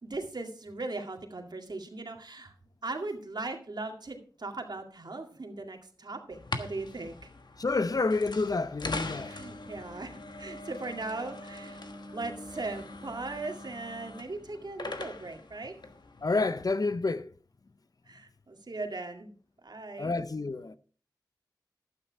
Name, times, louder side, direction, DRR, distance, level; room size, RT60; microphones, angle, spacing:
voice 1, 0.0-2.5 2.8-7.3 9.2-11.8 12.1-15.7 18.1-19.3 19.6-20.1, right 3 dB, 65° right, 2.1 m, -38 dB
sound 1, 6.3-16.6, left 2 dB, 70° left, 1.3 m, -42 dB
voice 2, 7.6-9.3 16.2-17.3 20.0-20.8, left 3 dB, 55° left, 0.6 m, -29 dB
12.0 x 9.1 x 4.7 m
wide cardioid pair, 60°, 8 cm